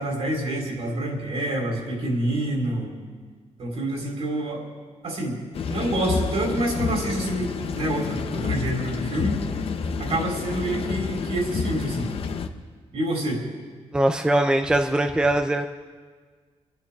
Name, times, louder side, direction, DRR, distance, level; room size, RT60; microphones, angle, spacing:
voice 1, 0.0-2.9 3.6-4.7 5.0-5.4 5.7-7.5 7.7-9.4 10.0-12.1 12.9-13.4, right 1 dB, 60° right, -1 dB, 3.9 m, -27 dB
sound 1, 5.5-12.5, left 5 dB, 55° left, 0.8 m, -29 dB
voice 2, 13.9-15.7, right 1 dB, 5° right, 5 dB, 0.5 m, -21 dB
26.0 x 11.5 x 3.6 m, 1.5 s
wide cardioid pair, 175°, 12 cm